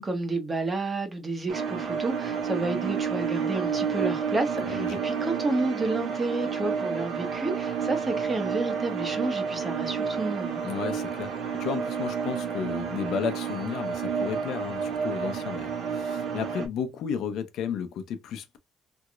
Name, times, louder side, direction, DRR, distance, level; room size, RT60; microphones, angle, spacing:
voice 1, 0.0-10.6, right 2 dB, 30° right, 1.3 m, -30 dB
sound 1, 1.5-16.7, right 6 dB, 85° right, 1.0 m, -30 dB
voice 2, 4.7-5.0 10.6-18.6, left 7 dB, 85° left, 0.7 m, -33 dB
3.5 x 3.0 x 2.4 m
cardioid pair, 90°, 0 cm